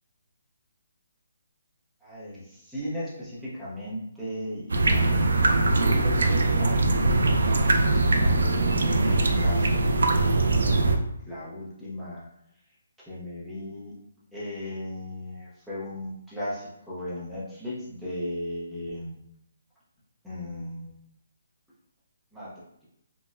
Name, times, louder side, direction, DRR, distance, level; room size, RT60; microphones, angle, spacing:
voice 1, 2.0-7.0 7.5-9.8 11.3-12.3 13.1-13.9 14.3-19.2 20.2-20.9 22.3-22.5, left 1 dB, ahead, -10 dB, 0.6 m, -37 dB
sound 1, 4.7-11.0, right 2 dB, 75° right, 0.4 m, -22 dB
4.0 x 2.0 x 2.4 m, 0.78 s
hypercardioid pair, 180°, 0 cm